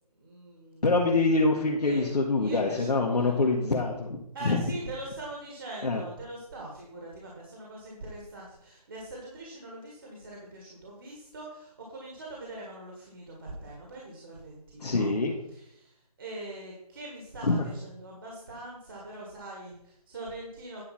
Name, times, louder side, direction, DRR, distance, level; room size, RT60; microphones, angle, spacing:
voice 1, 0.2-0.8 1.8-3.5 4.3-15.1 15.5-20.8, right 2 dB, 35° right, -2 dB, 1.7 m, -42 dB
voice 2, 0.8-4.6 5.8-6.0 14.8-15.4 17.4-17.6, left 3 dB, 75° left, -3 dB, 1.7 m, -25 dB
9.9 x 4.8 x 5.9 m, 0.76 s
figure-of-eight pair, 170°, 20 cm